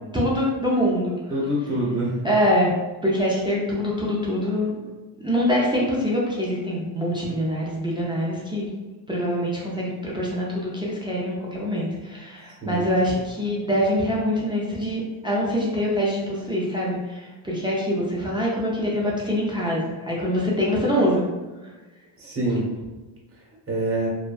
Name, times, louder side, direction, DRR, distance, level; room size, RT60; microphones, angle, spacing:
voice 1, 0.1-1.2 2.2-2.8 3.0-4.7 5.2-8.7 9.1-21.3, equal, 10° right, -5 dB, 0.3 m, -24 dB
voice 2, 1.3-2.2 12.6-12.8 22.2-22.7 23.7-24.1, right 1 dB, 25° right, -4 dB, 0.9 m, -25 dB
2.6 x 2.2 x 2.3 m, 1.2 s
cardioid pair, 95°, 49 cm